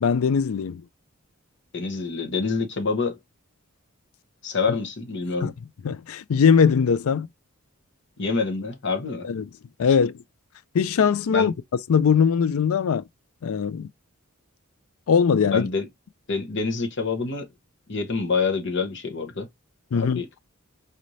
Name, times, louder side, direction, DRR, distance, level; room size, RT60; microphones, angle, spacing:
voice 1, 0.0-0.8 5.4-5.5 5.8-7.3 9.2-9.5 9.8-10.2 10.7-11.5 11.9-13.0 13.4-13.9 15.1-15.7 19.9-20.2, left 6 dB, 70° left, 0.4 m, -20 dB
voice 2, 1.7-3.2 4.4-5.5 8.2-9.3 11.3-11.5 15.5-15.9 16.3-17.5 17.9-19.5 19.9-20.3, left 4 dB, 55° left, 1.0 m, -26 dB
4.2 x 3.2 x 2.6 m
head